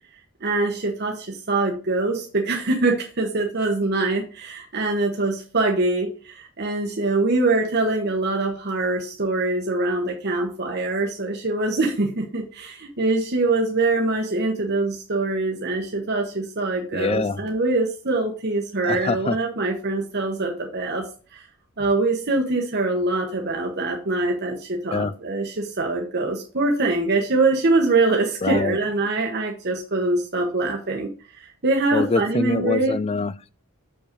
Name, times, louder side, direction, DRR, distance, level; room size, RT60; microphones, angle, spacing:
voice 1, 0.4-21.4 21.8-33.0, right 2 dB, 45° right, 1.1 m, -24 dB
voice 2, 16.9-17.4 18.8-19.4 24.9-25.1 28.4-28.8 31.9-33.5, left 4 dB, 25° left, 0.3 m, -24 dB
6.4 x 5.5 x 5.2 m
head